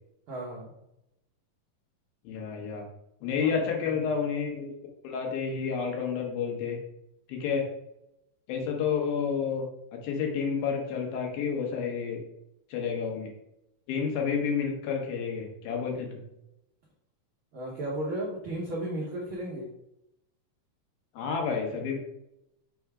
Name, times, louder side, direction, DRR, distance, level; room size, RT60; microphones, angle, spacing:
voice 1, 0.3-0.7 3.4-3.5 17.5-19.7, right 1 dB, 85° right, -4 dB, 1.1 m, -34 dB
voice 2, 2.2-2.8 3.2-4.7 5.0-6.8 7.3-7.6 8.5-9.6 10.0-12.2 12.7-13.3 13.9-16.2 21.1-22.0, left 6 dB, 80° left, 1 dB, 3.0 m, -30 dB
6.1 x 3.4 x 4.8 m, 0.84 s
omnidirectional pair, 4.1 m